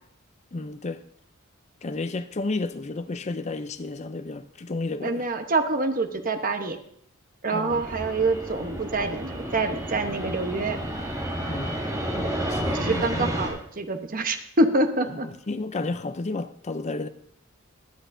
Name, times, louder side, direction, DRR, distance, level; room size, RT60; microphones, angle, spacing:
voice 1, 0.5-1.0 1.8-5.3 7.5-7.8 11.5-11.8 12.5-13.3 15.2-17.1, left 3 dB, 35° left, 0.5 m, -32 dB
voice 2, 5.0-6.8 7.4-10.8 12.1-12.3 12.7-15.3, right 2 dB, 45° right, 1.0 m, -26 dB
Fixed-wing aircraft airplane, 7.7-13.5, right 1 dB, 15° right, 2.4 m, -31 dB
23.5 x 8.0 x 2.7 m
head